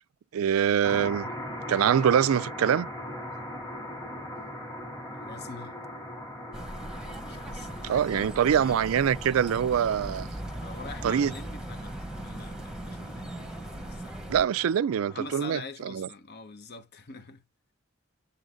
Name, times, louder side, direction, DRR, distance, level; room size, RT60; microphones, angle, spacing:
voice 1, 0.3-1.3 1.7-2.9 7.8-10.3 11.0-11.3 14.3-16.1, right 8 dB, 90° right, 0.3 m, -24 dB
sound 1, 0.8-15.5, left 1 dB, 15° left, 2.1 m, -41 dB
voice 2, 5.2-5.8 7.2-8.8 10.0-10.1 10.5-11.9 12.2-14.2 15.0-17.4, left 3 dB, 55° left, 0.8 m, -44 dB
sound 2, 6.5-14.4, right 1 dB, 5° right, 1.1 m, -39 dB
7.0 x 3.9 x 4.9 m
head